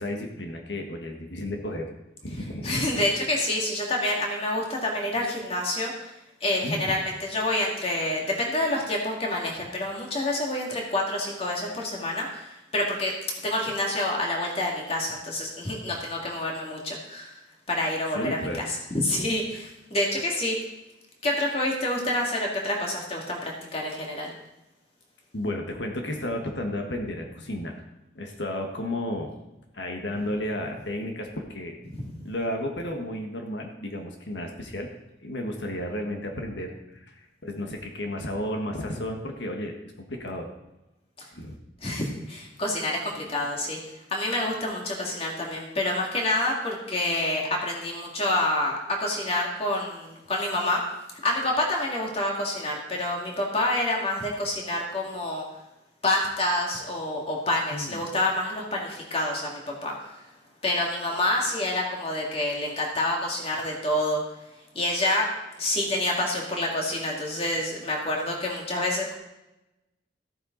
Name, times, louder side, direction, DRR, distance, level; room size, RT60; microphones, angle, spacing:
voice 1, 0.0-1.9 2.2-2.8 6.6-6.9 18.1-18.7 25.3-27.7 28.1-29.3 29.7-31.7 32.2-34.9 35.2-40.5 41.3-41.6 57.7-58.0, left 1 dB, 90° left, 2 dB, 1.6 m, -33 dB
voice 2, 2.6-6.1 6.4-13.1 13.4-17.4 17.7-20.6 21.2-24.3 32.0-32.1 41.2-41.3 41.8-43.8 44.1-50.8 51.2-55.4 56.0-60.2 60.6-64.2 64.7-65.3 65.6-69.1, left 1 dB, 35° left, -1 dB, 2.4 m, -28 dB
14.5 x 9.1 x 4.0 m, 0.96 s
head